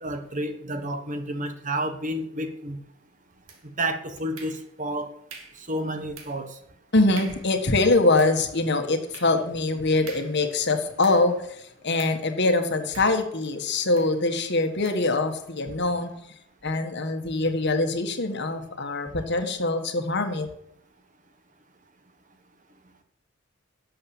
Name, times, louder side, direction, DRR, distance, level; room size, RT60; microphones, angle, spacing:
voice 1, 0.0-2.8 3.8-5.1 5.7-6.6, right 1 dB, 35° right, 7 dB, 1.3 m, -30 dB
sound 1, 3.5-3.9 4.4-4.9 5.3-5.7 6.2-6.5 6.8-6.9 7.2-7.6 8.0-11.5 12.0-12.3 12.9-13.5 14.0-14.2 14.8-15.1, right 5 dB, 70° right, 2.6 m, -46 dB
voice 2, 6.9-16.1 16.6-20.5, left 2 dB, 55° left, 6 dB, 1.7 m, -24 dB
12.0 x 7.7 x 7.3 m, 0.73 s
head